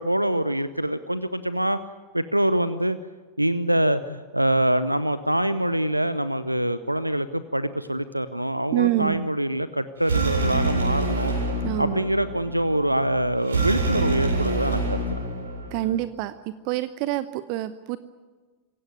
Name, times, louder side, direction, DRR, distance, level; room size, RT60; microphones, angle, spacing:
voice 1, 0.0-1.8 2.1-3.0 3.4-11.3 11.8-15.2, right 1 dB, 85° right, 15 dB, 0.8 m, -24 dB
voice 2, 8.7-9.3 11.6-12.0 15.7-16.3 16.6-18.0, right 15 dB, 45° right, 14 dB, 0.8 m, -26 dB
sound 1, 10.0-16.0, right 2 dB, 70° right, 7.9 m, -26 dB
26.0 x 16.5 x 9.4 m, 1.4 s
figure-of-eight pair, 90°, 0 cm